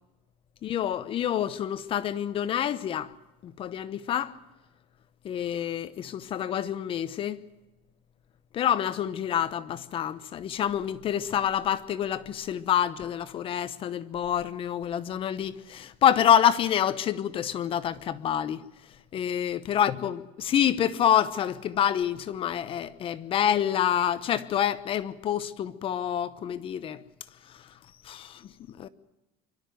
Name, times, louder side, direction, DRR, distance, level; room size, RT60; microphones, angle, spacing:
voice 1, 0.6-3.1 3.4-4.3 5.2-7.4 8.5-18.6 19.1-27.0 28.0-28.5 28.8-28.9, left 10 dB, 35° left, 0.9 m, -27 dB
25.0 x 12.5 x 9.3 m
cardioid pair, 145°, 15 cm